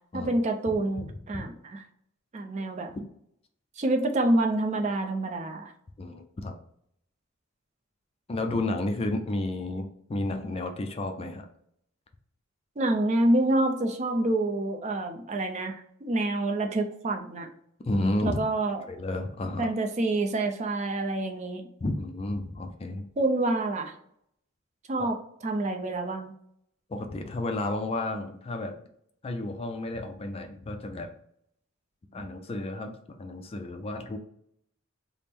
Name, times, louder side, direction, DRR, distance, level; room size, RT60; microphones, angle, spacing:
voice 1, 0.0-1.8 2.3-2.9 3.8-5.7 12.8-15.7 16.0-17.5 18.2-18.8 19.6-21.6 23.2-23.9 24.9-25.2 25.4-26.3, right 2 dB, 35° right, 4 dB, 0.5 m, -27 dB
voice 2, 1.0-1.4 6.0-6.5 8.3-11.5 17.9-18.4 18.9-19.7 21.8-23.0 26.9-28.8 29.2-31.1 32.1-32.9 33.2-34.2, left 2 dB, 30° left, 5 dB, 0.4 m, -31 dB
3.5 x 2.0 x 4.3 m, 0.70 s
head